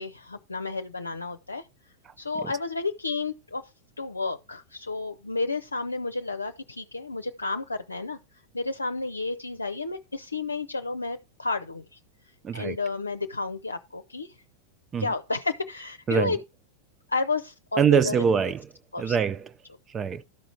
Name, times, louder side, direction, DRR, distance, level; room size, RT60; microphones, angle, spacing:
voice 1, 0.0-1.7 2.2-3.7 4.0-8.2 8.5-12.0 12.5-14.4 15.0-16.4 17.1-18.2 18.9-19.2, left 3 dB, 80° left, 0.6 m, -31 dB
voice 2, 12.4-12.8 14.9-15.1 16.1-16.4 17.8-18.7 19.0-19.5 19.9-20.2, right 6 dB, 25° right, 0.4 m, -24 dB
13.0 x 4.9 x 4.5 m
figure-of-eight pair, 90°, 0 cm